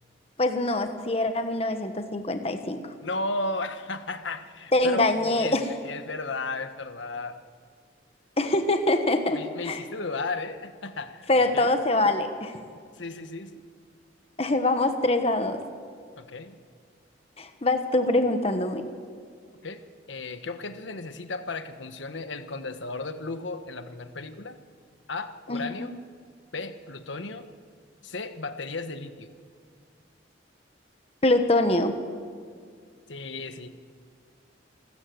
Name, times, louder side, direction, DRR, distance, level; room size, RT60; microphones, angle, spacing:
voice 1, 0.4-2.8 4.7-5.6 8.4-9.8 11.3-12.6 14.4-15.6 17.4-18.9 25.5-25.9 31.2-32.0, left 2 dB, 30° left, 7 dB, 1.2 m, -24 dB
voice 2, 3.0-5.1 5.4-7.4 9.3-11.3 11.5-11.7 12.9-13.6 16.2-16.6 19.6-19.8 20.1-24.6 25.1-26.0 26.5-27.5 28.0-29.3 33.1-33.7, left 3 dB, 80° left, 9 dB, 1.3 m, -34 dB
28.0 x 14.0 x 7.8 m, 2.1 s
head